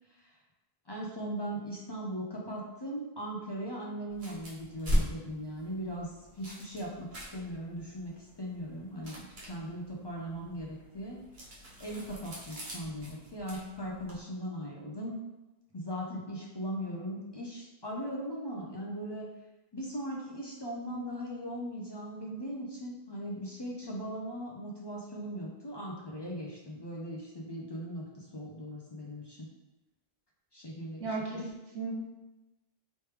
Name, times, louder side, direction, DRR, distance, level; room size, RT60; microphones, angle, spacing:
voice 1, 0.9-11.2 11.8-15.2 15.7-19.3 19.7-29.5 30.5-31.4, equal, 45° left, -3 dB, 0.3 m, -39 dB
sound 1, 4.1-14.2, equal, 50° right, 1.0 m, -39 dB
voice 2, 31.0-31.9, right 3 dB, 85° right, -3 dB, 1.1 m, -35 dB
3.1 x 3.1 x 3.2 m, 1.0 s
omnidirectional pair, 1.1 m